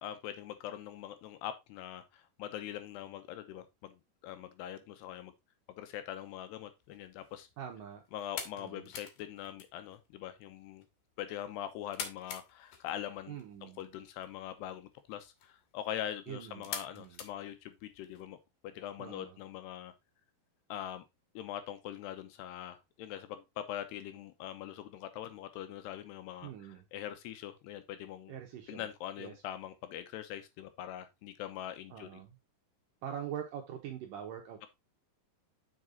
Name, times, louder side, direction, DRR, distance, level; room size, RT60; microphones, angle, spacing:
voice 1, 0.0-5.3 5.8-7.5 8.1-10.9 11.2-18.4 18.6-19.9 20.7-21.0 21.3-28.3 28.7-32.2, left 11 dB, 80° left, 2.9 m, -43 dB
sound 1, 6.8-18.2, left 7 dB, 60° left, 2.6 m, -48 dB
voice 2, 7.6-8.0 8.6-8.9 13.3-13.8 16.3-17.2 19.0-19.4 26.4-26.8 28.3-28.9 29.2-29.3 31.9-32.4 33.0-34.7, right 9 dB, 70° right, 2.2 m, -43 dB
7.6 x 5.4 x 3.9 m
omnidirectional pair, 5.0 m